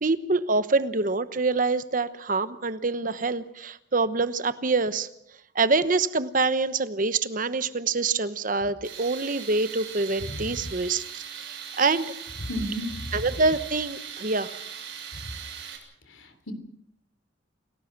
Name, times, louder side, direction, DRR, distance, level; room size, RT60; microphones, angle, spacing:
voice 1, 0.0-5.1 5.5-12.1 13.1-14.6, right 3 dB, 45° right, 13 dB, 1.0 m, -26 dB
Tools, 8.8-15.8, right 8 dB, 70° right, 6.8 m, -40 dB
voice 2, 12.5-13.1 16.1-16.5, equal, 90° left, 9 dB, 3.2 m, -33 dB
28.0 x 18.5 x 6.1 m, 0.73 s
head